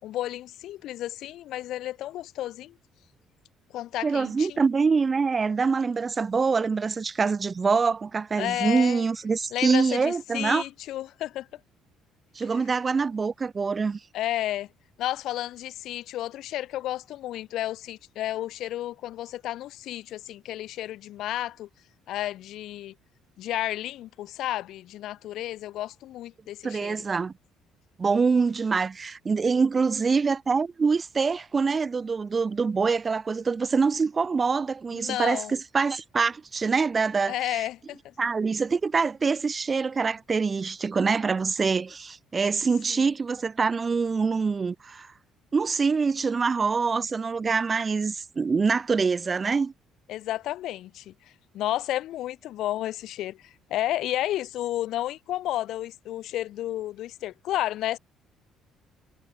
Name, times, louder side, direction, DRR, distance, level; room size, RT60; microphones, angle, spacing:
voice 1, 0.0-2.8 3.7-4.6 8.4-9.0 9.5-11.5 14.1-14.7 15.0-21.7 22.1-22.9 23.4-27.0 34.9-35.5 37.3-38.1 42.9-43.1 50.1-51.1 51.5-58.0, left 14 dB, 75° left, 3.6 m, -32 dB
voice 2, 4.0-10.6 12.4-14.0 26.6-27.3 28.0-37.7 38.2-45.1 45.5-49.7, right 5 dB, 30° right, 5.4 m, -25 dB
cardioid pair, 105°, 0 cm